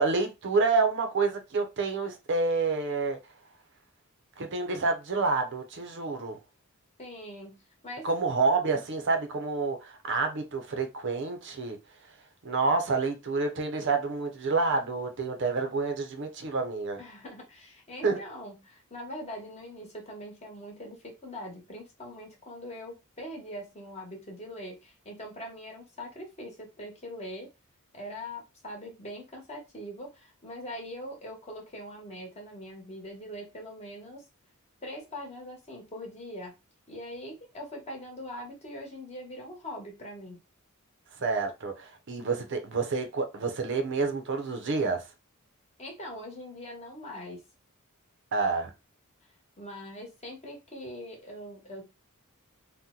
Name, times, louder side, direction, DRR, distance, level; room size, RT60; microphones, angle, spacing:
voice 1, 0.0-3.2 4.4-6.4 8.0-11.8 12.4-17.0 18.0-18.2 41.2-45.0 48.3-48.7, right 4 dB, 60° right, 0.6 m, -28 dB
voice 2, 7.0-8.1 17.0-27.5 27.9-34.2 34.8-36.5 36.9-40.4 45.8-47.4 49.6-51.8, equal, 30° left, 1.0 m, -42 dB
2.8 x 2.1 x 3.6 m
head